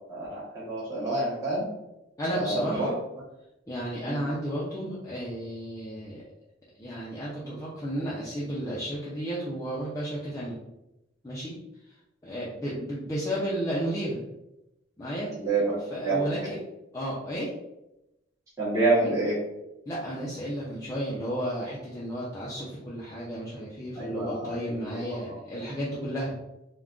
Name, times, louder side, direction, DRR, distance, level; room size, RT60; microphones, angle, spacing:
voice 1, 0.1-1.6 2.3-2.9 4.0-4.2 15.3-16.5 18.6-19.4 24.0-24.8, right 2 dB, 15° right, -10 dB, 0.8 m, -28 dB
voice 2, 2.2-3.0 3.7-6.2 6.8-10.6 11.2-11.6 12.2-14.3 15.0-15.3 15.9-16.6 16.9-17.5 19.9-26.4, equal, 15° left, -7 dB, 0.4 m, -33 dB
2.4 x 2.2 x 3.5 m, 0.91 s
head